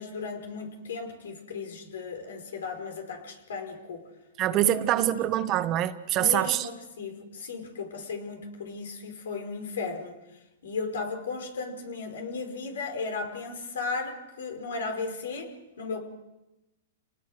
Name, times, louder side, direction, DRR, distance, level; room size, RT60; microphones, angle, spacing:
voice 1, 0.0-4.0 4.5-4.7 5.0-5.1 6.2-10.2 10.6-16.0, left 4 dB, 80° left, 5 dB, 5.0 m, -35 dB
voice 2, 4.4-6.7, right 13 dB, 35° right, 11 dB, 1.4 m, -25 dB
28.5 x 19.5 x 6.4 m, 1.0 s
hypercardioid pair, 130°, 0 cm